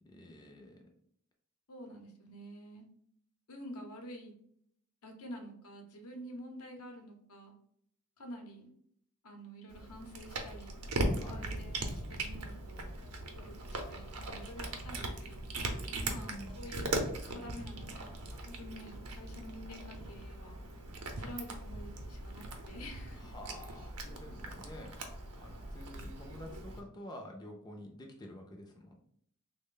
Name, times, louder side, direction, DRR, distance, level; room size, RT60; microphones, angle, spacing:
voice 1, 0.0-0.9 11.1-11.5 15.9-16.6 23.2-28.9, left 1 dB, 20° left, 1 dB, 0.4 m, -49 dB
voice 2, 1.7-2.8 3.5-4.3 5.0-7.5 8.2-8.7 9.2-10.8 11.3-12.9 13.4-15.4 16.1-18.1 18.4-20.6 21.2-23.3, equal, 80° left, 3 dB, 0.7 m, -48 dB
Cat, 9.7-26.8, right 2 dB, 80° right, 0.6 m, -40 dB
3.3 x 2.1 x 3.7 m, 0.68 s
head